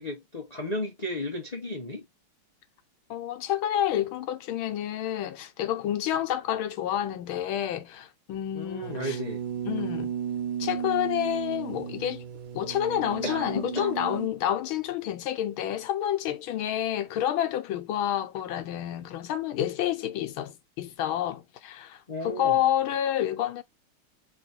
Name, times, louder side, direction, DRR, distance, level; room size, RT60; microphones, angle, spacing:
voice 1, 0.0-2.1 8.5-9.4 13.2-14.0 22.1-22.6, left 1 dB, 70° left, 0.4 m, -34 dB
voice 2, 3.1-9.2 9.7-10.1 10.6-12.2 12.5-23.6, left 11 dB, 85° left, 1.6 m, -29 dB
sound 1, 8.8-14.3, right 8 dB, 75° right, 1.5 m, -34 dB
3.5 x 3.2 x 4.2 m
omnidirectional pair, 2.2 m